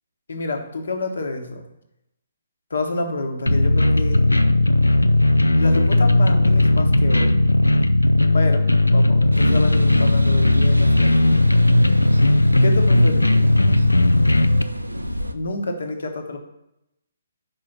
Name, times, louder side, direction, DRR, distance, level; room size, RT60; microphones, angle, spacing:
voice 1, 0.3-1.7 2.7-4.2 5.6-7.4 8.3-11.5 12.6-13.5 15.3-16.4, left 2 dB, 60° left, 4 dB, 1.1 m, -28 dB
sound 1, 3.5-14.6, left 2 dB, 85° left, 0.4 m, -16 dB
sound 2, 9.3-15.3, equal, 90° right, 0.5 m, -30 dB
5.4 x 4.8 x 5.8 m, 0.85 s
figure-of-eight pair, 135°, 0 cm